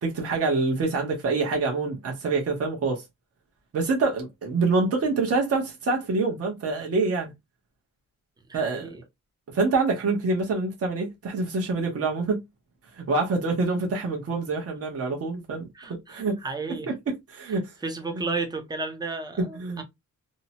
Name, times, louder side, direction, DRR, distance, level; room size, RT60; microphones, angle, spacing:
voice 1, 0.0-3.0 3.7-7.3 8.5-8.9 9.5-12.4 12.9-16.4 16.7-17.7 18.1-18.3 19.4-19.8, right 3 dB, 45° right, 0.8 m, -26 dB
voice 2, 8.5-9.0 15.7-16.9 17.8-19.8, right 3 dB, 10° right, 0.5 m, -33 dB
2.7 x 2.0 x 2.7 m
wide cardioid pair, 160°, 33 cm